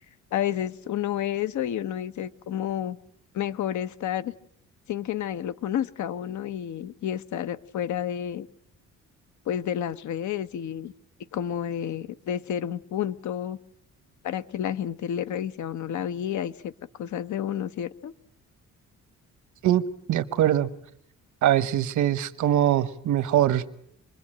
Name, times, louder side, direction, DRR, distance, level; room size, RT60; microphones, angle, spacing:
voice 1, 0.3-3.0 3.3-4.3 4.9-8.5 9.5-10.9 11.3-13.6 14.2-16.7 17.0-18.1, left 10 dB, 70° left, 1.0 m, -30 dB
voice 2, 20.1-20.7 21.4-23.7, right 11 dB, 75° right, 1.3 m, -22 dB
27.5 x 21.5 x 8.9 m
cardioid pair, 90°, 30 cm